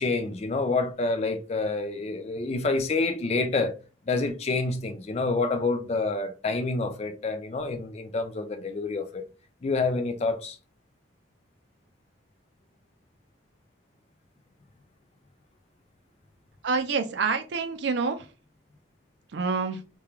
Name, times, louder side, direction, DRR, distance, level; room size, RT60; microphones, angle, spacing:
voice 1, 0.0-3.7 4.1-9.2 9.6-10.6, left 3 dB, 35° left, 0.3 m, -28 dB
voice 2, 16.6-18.3 19.3-19.8, right 4 dB, 65° right, 0.4 m, -27 dB
3.0 x 2.3 x 2.3 m
head